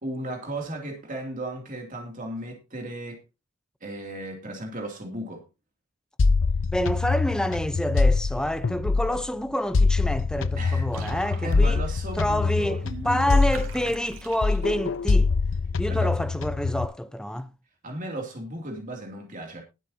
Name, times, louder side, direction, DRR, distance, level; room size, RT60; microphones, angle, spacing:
voice 1, 0.0-3.2 3.8-5.4 10.6-10.8 11.4-13.9 15.9-16.1 17.8-19.6, right 1 dB, 40° right, 2.9 m, -35 dB
sound 1, 6.2-9.3 9.7-14.2 14.4-16.9, left 4 dB, 60° left, 0.6 m, -24 dB
voice 2, 6.7-11.8 12.2-15.3 15.8-17.5, equal, 5° left, 0.8 m, -28 dB
Water / Bathtub (filling or washing), 10.9-15.0, right 4 dB, 85° right, 3.1 m, -44 dB
20.0 x 8.2 x 2.8 m
head